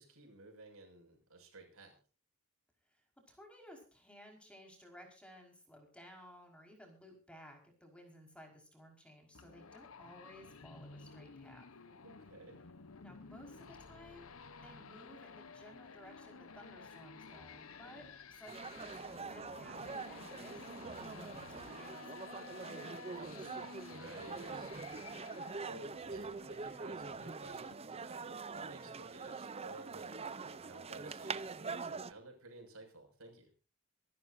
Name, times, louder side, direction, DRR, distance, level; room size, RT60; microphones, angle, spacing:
voice 1, 0.0-1.9 12.0-12.6 23.9-33.5, right 2 dB, 75° right, 2 dB, 6.6 m, -54 dB
voice 2, 2.9-11.6 13.0-20.7 20.9-23.5, equal, 5° left, 3 dB, 5.0 m, -57 dB
sound 1, 9.3-27.7, left 4 dB, 70° left, 1.0 m, -53 dB
sound 2, 18.5-32.1, right 4 dB, 30° right, 0.6 m, -44 dB
26.5 x 12.0 x 2.7 m, 0.35 s
head